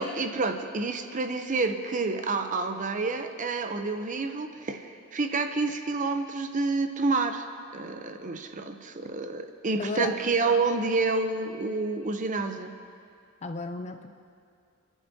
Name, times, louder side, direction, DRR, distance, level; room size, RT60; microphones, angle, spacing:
voice 1, 0.0-7.5 7.7-12.7, right 3 dB, 35° right, 7 dB, 0.6 m, -29 dB
voice 2, 9.8-10.1 13.4-14.1, left 3 dB, 30° left, 7 dB, 0.5 m, -33 dB
27.0 x 11.0 x 2.8 m, 2.3 s
head